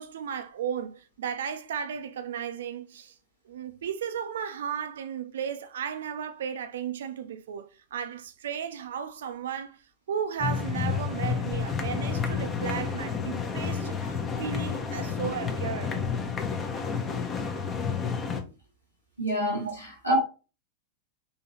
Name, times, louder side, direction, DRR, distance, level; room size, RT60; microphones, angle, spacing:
voice 1, 0.0-3.1 3.5-9.8 10.1-16.1 19.6-19.7, right 8 dB, 65° right, 0.4 m, -35 dB
sound 1, 10.4-18.4, left 6 dB, 25° left, 0.7 m, -30 dB
voice 2, 19.2-20.2, right 1 dB, 90° left, 1.4 m, -27 dB
3.8 x 2.8 x 2.8 m
figure-of-eight pair, 90°, 0 cm